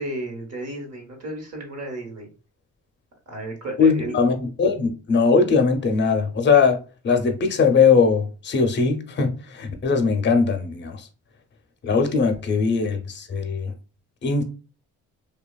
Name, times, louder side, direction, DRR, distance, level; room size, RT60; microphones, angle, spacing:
voice 1, 0.0-2.3 3.3-4.2 12.0-12.2, right 1 dB, 55° right, 1.2 m, -33 dB
voice 2, 3.8-11.1 11.8-13.7 14.2-14.4, left 5 dB, 35° left, 0.6 m, -20 dB
2.8 x 2.3 x 2.2 m
cardioid pair, 90°, 30 cm